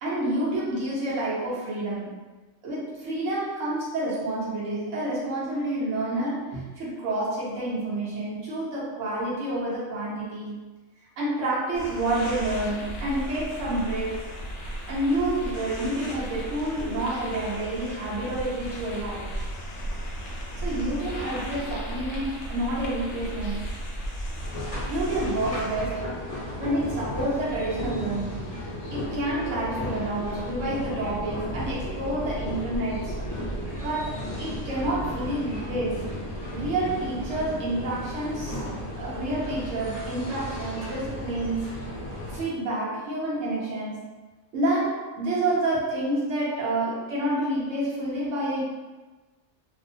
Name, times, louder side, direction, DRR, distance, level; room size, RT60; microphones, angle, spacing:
voice 1, 0.0-2.2 2.6-10.8 11.2-14.3 14.9-19.4 20.6-23.8 24.9-26.2 26.6-28.6 28.9-33.3 33.8-36.2 36.5-38.6 38.9-41.7 42.3-44.1 44.5-48.6, right 1 dB, 70° right, -7 dB, 1.2 m, -29 dB
sound 1, 11.7-25.7, equal, 65° left, 0.8 m, -35 dB
sound 2, 24.4-42.5, equal, 30° left, 0.8 m, -34 dB
2.8 x 2.1 x 2.6 m, 1.2 s
omnidirectional pair, 1.4 m